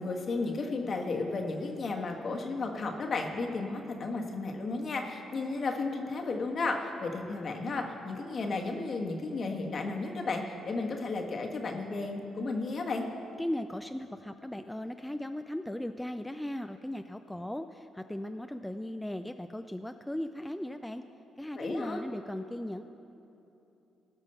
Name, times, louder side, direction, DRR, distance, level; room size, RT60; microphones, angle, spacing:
voice 1, 0.0-13.0 21.6-22.0, left 3 dB, 50° left, 2 dB, 1.5 m, -33 dB
voice 2, 13.4-21.0 21.4-22.8, left 1 dB, 5° left, 8 dB, 0.4 m, -37 dB
18.0 x 6.3 x 5.6 m, 2.9 s
cardioid pair, 75°, 0 cm